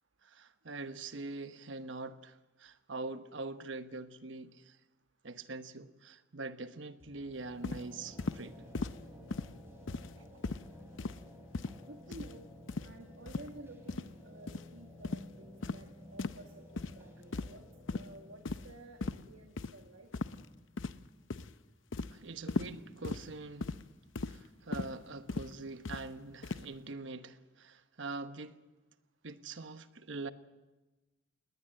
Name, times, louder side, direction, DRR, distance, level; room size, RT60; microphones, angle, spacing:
voice 1, 0.2-4.8 5.2-8.6 10.2-10.3 22.1-23.7 24.3-28.6 29.2-30.3, right 3 dB, 70° right, 1.1 m, -44 dB
sound 1, 7.0-20.7, left 1 dB, 10° right, 3.8 m, -55 dB
sound 2, 7.6-7.8 8.2-8.4 8.7-9.0 9.3-9.5 9.9-10.2 10.4-10.6 11.0-11.2 11.5-11.8 12.1-12.3 12.7-12.9 13.3-13.5 13.9-14.1 14.5-14.6 15.0-15.3 15.6-15.8 16.2-16.4 16.8-17.0 17.3-17.6 17.9-18.1 18.5-18.7 19.0-19.2 19.6-19.7 20.1-20.4 20.8-21.1 21.3-21.5 21.9-22.1 22.5-22.7 23.0-23.2 23.6-23.8 24.2-24.4 24.7-24.9 25.3-25.5 25.8-26.0 26.4-26.7, left 3 dB, 75° left, 0.7 m, -37 dB
voice 2, 11.9-12.5 12.8-17.6 17.9-20.1, right 1 dB, 85° right, 1.5 m, -52 dB
20.0 x 18.5 x 7.7 m
head